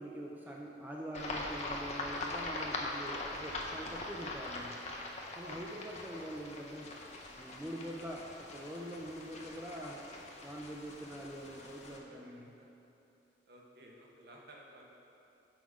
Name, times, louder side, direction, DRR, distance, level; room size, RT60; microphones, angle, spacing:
voice 1, 0.0-4.8 5.3-7.0 7.3-12.5, right 1 dB, 10° right, -2 dB, 0.3 m, -44 dB
sound 1, 1.1-12.0, left 2 dB, 35° left, 0.6 m, -42 dB
voice 2, 5.4-5.8 11.9-12.2 12.6-12.7 13.5-14.9, right 1 dB, 55° right, -2 dB, 0.9 m, -55 dB
6.0 x 4.8 x 4.8 m, 2.8 s
head